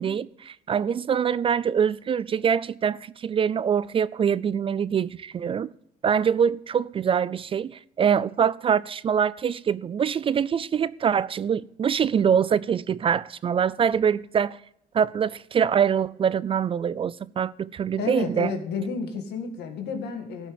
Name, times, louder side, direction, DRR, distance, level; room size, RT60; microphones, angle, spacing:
voice 1, 0.0-5.7 6.0-14.6 14.9-18.5, right 7 dB, 30° right, 0.3 m, -24 dB
voice 2, 18.0-20.5, left 5 dB, 75° left, 2.2 m, -31 dB
15.0 x 5.8 x 7.1 m
cardioid pair, 110°, 17 cm